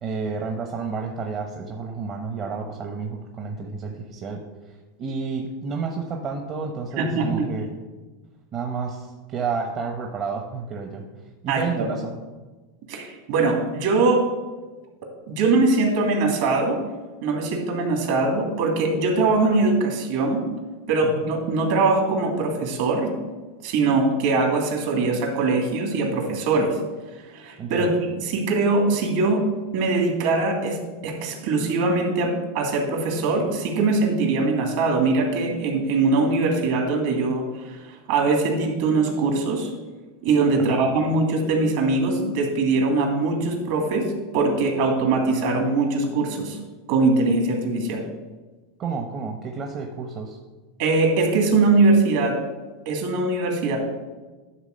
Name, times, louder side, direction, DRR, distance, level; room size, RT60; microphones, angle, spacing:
voice 1, 0.0-7.7 8.5-11.0 11.4-12.1 21.0-21.1 27.6-27.9 40.7-40.8 48.8-50.4, right 5 dB, 40° right, 2 dB, 1.0 m, -30 dB
voice 2, 7.0-7.5 11.5-11.9 12.9-14.2 15.3-16.8 17.2-20.4 20.9-23.1 23.6-26.8 27.3-27.9 28.2-29.4 29.7-30.8 31.0-39.7 40.2-44.1 44.3-46.6 46.9-48.0 50.8-52.4 52.9-53.8, right 3 dB, 65° right, 1 dB, 2.4 m, -22 dB
11.0 x 3.7 x 6.6 m, 1.2 s
hypercardioid pair, 105°, 0 cm